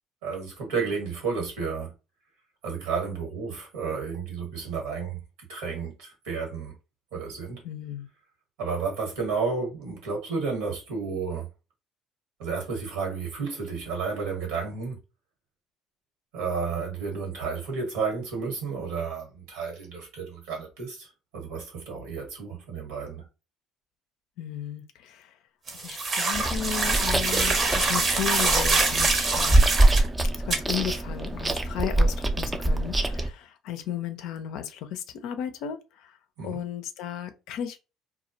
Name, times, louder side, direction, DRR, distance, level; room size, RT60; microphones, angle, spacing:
voice 1, 0.2-1.9 2.6-5.2 5.5-6.7 7.1-7.6 8.6-11.5 12.4-15.0 16.3-23.2 36.4-36.6, right 5 dB, 85° right, 1.2 m, -32 dB
voice 2, 7.6-8.1 24.4-25.3 25.7-29.7 30.3-36.2 36.4-37.8, left 9 dB, 70° left, 0.4 m, -35 dB
sound 1, 25.7-30.1 30.5-30.6, right 3 dB, 45° right, 0.7 m, -25 dB
Chewing mastication, 26.3-33.3, right 2 dB, 20° right, 0.4 m, -24 dB
2.2 x 2.1 x 2.6 m
supercardioid pair, 70°, 0 cm